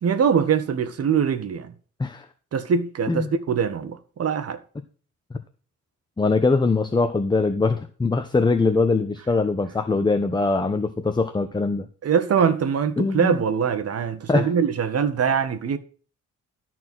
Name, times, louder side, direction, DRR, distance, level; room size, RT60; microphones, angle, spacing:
voice 1, 0.0-1.7 2.5-4.6 12.0-15.8, right 7 dB, 55° right, 1.6 m, -23 dB
voice 2, 6.2-11.9 13.0-13.4 14.3-14.5, left 3 dB, 15° left, 1.0 m, -22 dB
13.0 x 4.6 x 6.2 m
cardioid pair, 90°, 30 cm